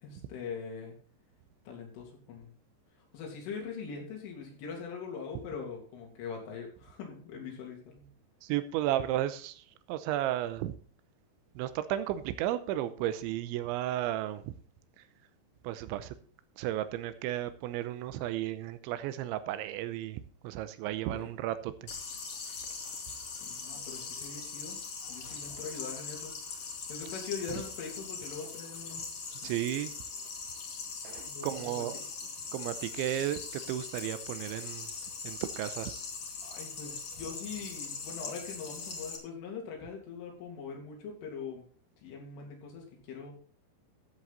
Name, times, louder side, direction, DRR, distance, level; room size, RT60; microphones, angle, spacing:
voice 1, 0.0-1.0 1.7-2.5 3.1-8.1 21.1-21.3 23.4-24.8 25.1-29.0 29.4-29.5 31.3-31.9 36.4-41.7 42.0-43.3, left 5 dB, 85° left, 0 dB, 5.7 m, -42 dB
voice 2, 8.4-10.7 11.6-14.6 15.0-15.1 15.6-16.2 16.6-21.9 22.5-22.6 29.4-29.9 31.0-31.9 32.5-34.9 35.2-35.9, right 13 dB, 85° right, 12 dB, 3.1 m, -34 dB
sound 1, 21.9-39.2, left 5 dB, 45° left, 2.4 m, -41 dB
14.0 x 8.0 x 4.1 m, 0.42 s
omnidirectional pair, 5.5 m